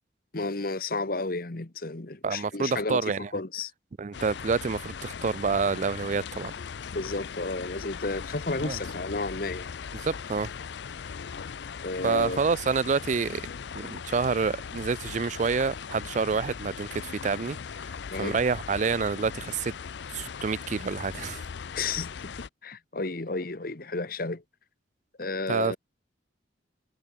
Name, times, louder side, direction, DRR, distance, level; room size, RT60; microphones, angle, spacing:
voice 1, 0.3-3.7 6.9-9.7 11.8-12.4 18.1-18.4 21.7-24.4 25.2-25.8, left 3 dB, 50° left, 1.2 m, -32 dB
voice 2, 2.2-3.3 4.0-6.5 8.6-8.8 9.9-10.5 12.0-13.4 13.7-17.6 18.2-19.7 20.1-21.4 25.5-25.8, right 5 dB, 40° right, 0.4 m, -28 dB
sound 1, 4.1-22.5, left 6 dB, 65° left, 0.5 m, -39 dB
head